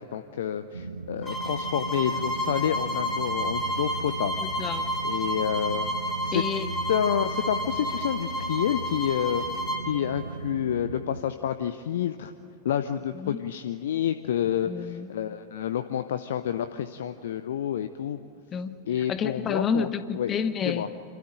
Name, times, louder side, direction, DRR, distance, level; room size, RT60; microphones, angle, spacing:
voice 1, 0.0-4.3 4.7-5.9 6.2-6.4 6.9-9.5 9.9-12.3 12.6-18.2 18.9-19.9 20.2-20.3 20.7-20.9, left 10 dB, 60° left, 10 dB, 0.6 m, -29 dB
sound 1, 0.7-11.2, right 3 dB, 80° right, 0.8 m, -37 dB
sound 2, 1.2-9.9, equal, 10° left, 3.2 m, -31 dB
voice 2, 4.4-4.9 6.3-6.7 13.1-13.4 14.6-15.1 18.5-20.9, left 6 dB, 25° left, 12 dB, 1.1 m, -30 dB
26.5 x 13.0 x 8.9 m, 3.0 s
figure-of-eight pair, 90°, 0 cm